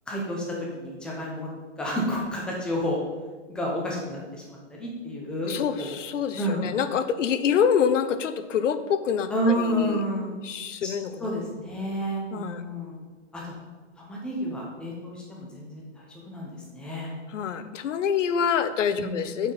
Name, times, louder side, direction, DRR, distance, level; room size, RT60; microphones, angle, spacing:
voice 1, 0.1-1.5 1.8-3.0 3.5-6.0 6.4-6.7 9.3-10.3 10.8-10.9 11.2-13.0 13.3-13.5 14.0-15.9 16.2-17.1 18.9-19.2, equal, ahead, -3 dB, 0.7 m, -30 dB
voice 2, 5.5-10.0 10.4-11.4 12.3-12.6 17.3-19.5, left 7 dB, 80° left, 11 dB, 0.8 m, -26 dB
8.3 x 4.4 x 5.5 m, 1.3 s
hypercardioid pair, 165°, 37 cm